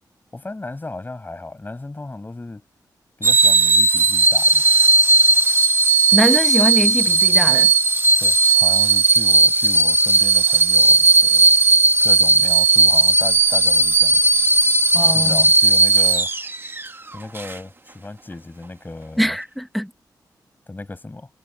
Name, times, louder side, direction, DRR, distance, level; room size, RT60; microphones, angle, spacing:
voice 1, 0.3-2.6 3.2-4.6 8.2-11.5 12.0-14.2 15.1-16.3 17.1-19.4 20.7-21.3, left 2 dB, 25° left, 7.8 m, -35 dB
sound 1, 3.2-16.9 17.4-17.5, right 3 dB, 30° right, 1.5 m, -16 dB
voice 2, 6.1-7.7 14.9-15.5 19.2-19.9, equal, ahead, 1.1 m, -22 dB
cardioid pair, 80°, 8 cm